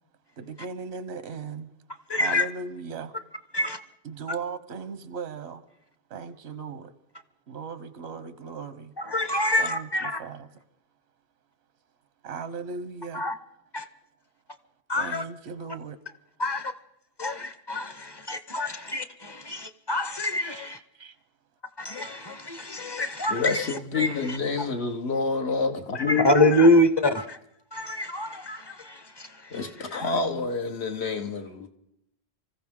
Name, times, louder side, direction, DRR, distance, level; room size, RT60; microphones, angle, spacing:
voice 1, 0.4-1.7 2.2-3.2 4.0-5.6 6.1-6.9 7.5-8.9 9.6-9.9 10.2-10.5 12.2-13.2 15.0-16.0 20.4-21.1, right 5 dB, 90° right, 1.0 m, -37 dB
voice 2, 2.1-2.5 3.5-3.8 9.0-10.2 13.1-13.4 13.7-13.9 14.9-15.2 16.4-16.7 17.2-20.8 21.8-24.4 25.9-27.4 27.7-30.1, left 1 dB, 30° left, 0.6 m, -26 dB
voice 3, 23.3-26.5 29.5-31.7, left 4 dB, 90° left, 1.5 m, -28 dB
25.0 x 14.5 x 3.7 m
omnidirectional pair, 1.1 m